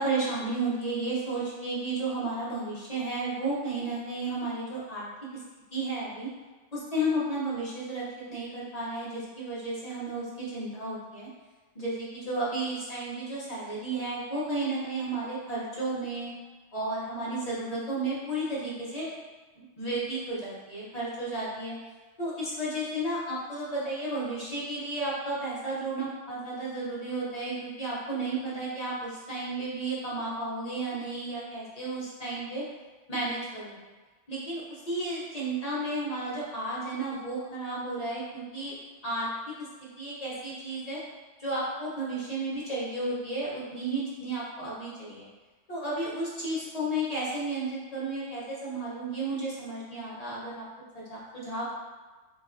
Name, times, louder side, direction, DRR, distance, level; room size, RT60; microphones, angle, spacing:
voice 1, 0.0-5.1 5.7-6.3 6.7-8.0 8.3-11.3 11.7-16.3 16.7-19.1 19.6-21.8 22.2-32.6 33.1-33.8 34.3-38.7 39.0-39.3 40.0-41.0 41.4-45.3 45.7-50.6 50.9-51.7, right 2 dB, 40° left, -7 dB, 0.7 m, -33 dB
3.3 x 2.3 x 2.4 m, 1.3 s
omnidirectional pair, 1.3 m